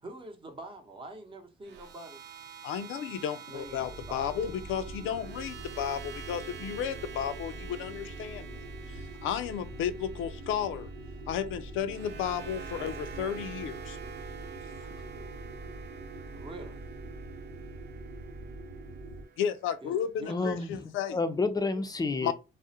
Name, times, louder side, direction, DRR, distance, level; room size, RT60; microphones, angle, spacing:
voice 1, 0.0-2.2 3.1-3.2 3.5-4.5 7.7-7.8 15.1-15.3 16.3-16.9 19.8-20.7, right 2 dB, 25° right, 0.7 m, -46 dB
sound 1, 1.6-19.8, right 8 dB, 60° right, 0.4 m, -48 dB
voice 2, 2.6-10.9 11.3-14.0 19.4-21.2 22.2-22.3, left 8 dB, 85° left, 0.4 m, -33 dB
sound 2, 3.5-19.3, right 2 dB, 80° right, 0.8 m, -44 dB
voice 3, 20.3-22.3, left 3 dB, 20° left, 0.4 m, -30 dB
2.3 x 2.0 x 2.7 m
cardioid pair, 90°, 20 cm